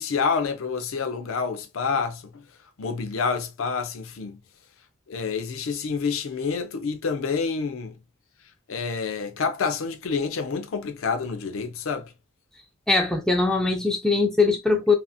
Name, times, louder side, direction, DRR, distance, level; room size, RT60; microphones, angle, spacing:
voice 1, 0.0-2.4 2.8-4.4 5.1-7.9 8.7-12.1, left 5 dB, 70° left, 0.5 m, -28 dB
voice 2, 12.9-14.9, left 3 dB, 5° left, 0.4 m, -21 dB
2.8 x 2.5 x 2.3 m
head